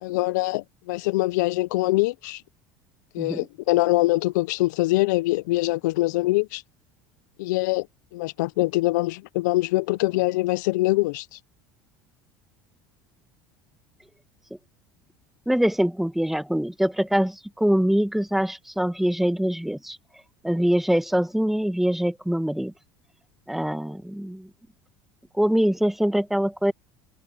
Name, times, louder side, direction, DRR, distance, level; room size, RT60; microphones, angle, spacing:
voice 1, 0.0-2.4 3.1-6.6 7.4-7.9 8.1-11.4, left 20 dB, 80° left, 0.5 m, -23 dB
voice 2, 15.5-20.0 20.4-22.7 23.5-24.5 25.3-26.7, equal, ahead, 1.3 m, -23 dB
supercardioid pair, 90°, 10 cm